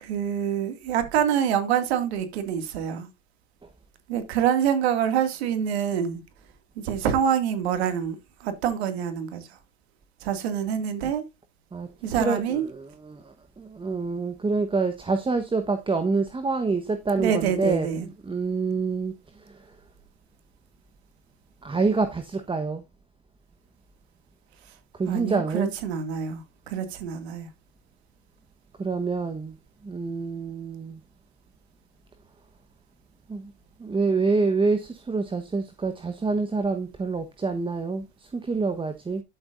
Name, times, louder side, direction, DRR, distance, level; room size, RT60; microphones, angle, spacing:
voice 1, 0.0-3.1 4.1-6.2 6.8-9.5 10.2-11.2 12.0-12.6 17.2-18.1 25.1-27.5, right 8 dB, 80° right, 2.3 m, -26 dB
voice 2, 12.2-19.6 21.6-22.8 24.9-25.7 28.8-29.6 29.8-31.0 33.3-33.5 33.8-39.2, right 4 dB, 15° right, 1.1 m, -27 dB
11.5 x 7.2 x 2.5 m
hypercardioid pair, 90°, 32 cm